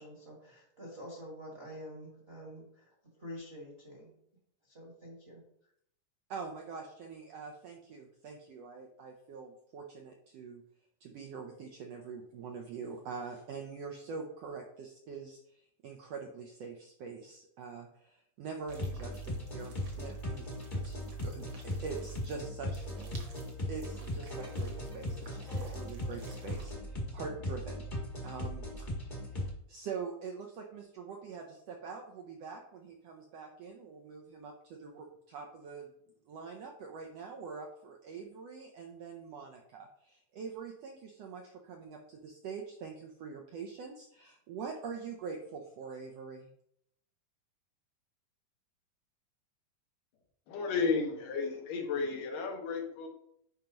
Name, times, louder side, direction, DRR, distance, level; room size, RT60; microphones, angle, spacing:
voice 1, 0.0-4.1 4.6-5.4, equal, 30° right, -4 dB, 1.1 m, -47 dB
voice 2, 6.3-10.6 11.0-20.5 20.7-22.8 23.7-27.9 28.2-35.9 36.3-46.5, right 5 dB, 80° right, 2 dB, 1.5 m, -44 dB
sound 1, 18.7-29.5, left 1 dB, 30° left, 0.8 m, -38 dB
sound 2, 18.7-26.7, right 4 dB, 50° right, 1.6 m, -56 dB
voice 3, 50.5-53.1, left 4 dB, 85° left, 1 dB, 2.9 m, -33 dB
9.2 x 5.1 x 2.9 m, 0.71 s
omnidirectional pair, 3.7 m